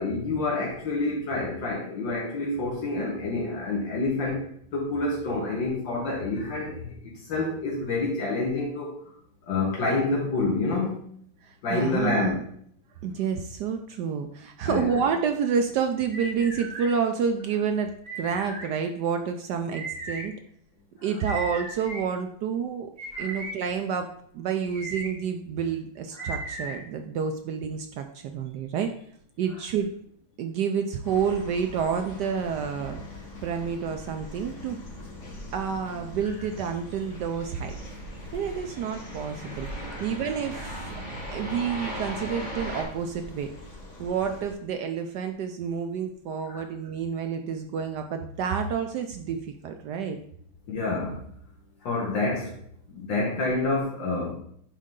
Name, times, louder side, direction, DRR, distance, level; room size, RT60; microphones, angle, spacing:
voice 1, 0.0-4.4 4.7-8.9 9.5-10.9 11.6-12.4 14.6-15.0 23.1-23.4 26.1-26.3 39.8-40.0 46.4-46.6 50.7-51.2 51.8-52.6 52.9-54.3, left 2 dB, 65° left, -3 dB, 1.9 m, -28 dB
voice 2, 11.4-12.4 13.0-20.3 21.0-22.9 23.2-28.9 29.4-29.9 30.4-34.8 35.5-37.7 38.3-39.7 40.0-40.9 41.3-43.5 44.0-50.2, right 6 dB, 75° right, 6 dB, 1.0 m, -29 dB
sound 1, 16.1-16.9 18.0-18.7 19.7-20.2 21.2-22.0 23.0-23.5 24.5-25.1 26.2-26.7, right 2 dB, 35° right, 1.7 m, -36 dB
sound 2, 31.0-44.5, left 2 dB, 35° left, 1.8 m, -42 dB
sound 3, 36.3-42.8, right 1 dB, 20° right, 2.4 m, -39 dB
10.5 x 3.8 x 3.7 m, 0.65 s
omnidirectional pair, 2.3 m